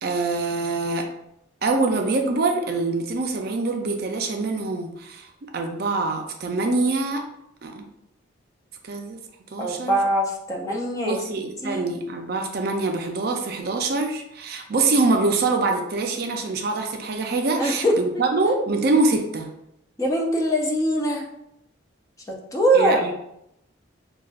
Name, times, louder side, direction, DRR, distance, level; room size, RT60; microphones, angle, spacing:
voice 1, 0.0-1.1 1.6-7.2 7.6-7.8 8.8-9.2 9.5-10.0 11.0-19.5 22.7-23.1, right 3 dB, 50° right, 4 dB, 0.4 m, -24 dB
voice 2, 9.6-11.2 11.6-11.8 17.6-18.2 20.0-21.3 22.3-23.0, right 1 dB, 15° left, -1 dB, 0.4 m, -22 dB
5.2 x 2.3 x 2.4 m, 0.81 s
head